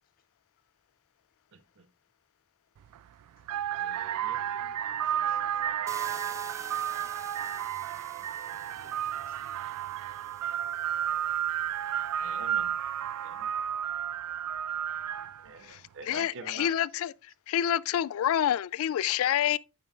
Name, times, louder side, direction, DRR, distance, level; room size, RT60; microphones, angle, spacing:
voice 1, 1.5-1.9 3.7-4.4 12.2-12.7 13.2-13.6 15.4-16.7, right 4 dB, 60° right, 0.7 m, -46 dB
sound 1, 2.8-3.0 3.4-15.5, right 10 dB, 90° right, 0.3 m, -32 dB
voice 2, 4.3-7.6 8.0-9.6, left 4 dB, 40° left, 0.8 m, -64 dB
sound 2, 5.9-12.7, right 3 dB, 15° right, 0.5 m, -49 dB
voice 3, 16.1-17.1 17.5-19.6, left 10 dB, 65° left, 0.3 m, -27 dB
10.5 x 5.5 x 2.4 m
head